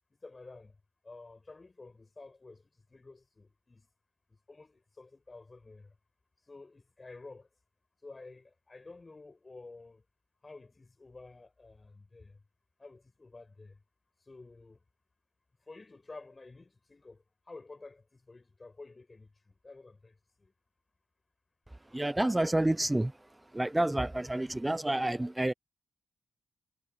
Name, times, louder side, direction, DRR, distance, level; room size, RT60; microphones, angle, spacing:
voice 1, 0.2-0.8 1.0-3.9 4.3-5.9 6.5-7.5 8.0-10.0 10.4-12.4 12.8-13.8 14.2-14.8 15.6-20.5, left 3 dB, 30° left, 4.7 m, -51 dB
voice 2, 21.9-23.1 23.5-25.5, right 1 dB, 15° right, 0.4 m, -29 dB
hypercardioid pair, 40°, 0 cm